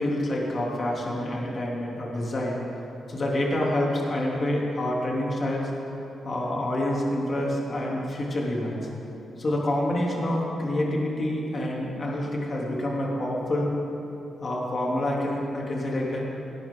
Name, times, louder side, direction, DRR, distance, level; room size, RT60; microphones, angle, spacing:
voice 1, 0.0-2.6 3.1-5.7 6.2-8.9 9.4-13.7 14.4-16.2, left 1 dB, 35° left, -3 dB, 3.3 m, -27 dB
19.5 x 17.5 x 4.0 m, 2.8 s
cardioid pair, 125°, 0 cm